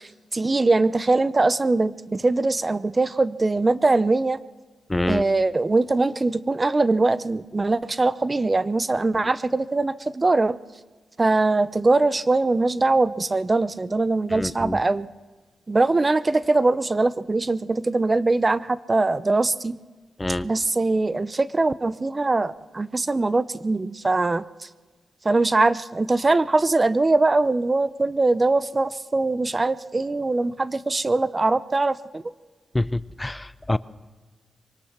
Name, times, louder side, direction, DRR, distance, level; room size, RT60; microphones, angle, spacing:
voice 1, 0.0-4.4 5.0-10.5 11.2-15.1 15.7-19.7 20.4-24.7 25.2-32.2, right 3 dB, 35° right, 16 dB, 0.8 m, -22 dB
voice 2, 4.9-5.2 14.3-14.8 20.2-20.5 32.7-33.8, left 1 dB, 20° left, 17 dB, 0.7 m, -26 dB
23.5 x 18.5 x 6.0 m, 1.3 s
cardioid pair, 50°, 0 cm